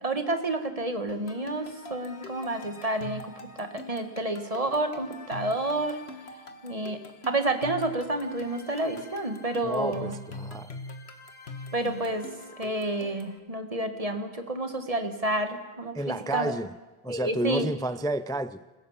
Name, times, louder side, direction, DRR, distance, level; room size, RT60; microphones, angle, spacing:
voice 1, 0.0-6.0 6.6-7.0 7.2-10.2 11.7-12.3 12.6-16.6 17.1-17.7, right 2 dB, 35° right, 8 dB, 1.8 m, -30 dB
sound 1, 1.1-13.4, left 3 dB, 90° left, 2.0 m, -43 dB
voice 2, 9.6-10.8 15.9-16.7 17.0-18.6, right 1 dB, 5° left, 15 dB, 0.4 m, -31 dB
28.0 x 16.0 x 7.3 m, 1.2 s
omnidirectional pair, 1.0 m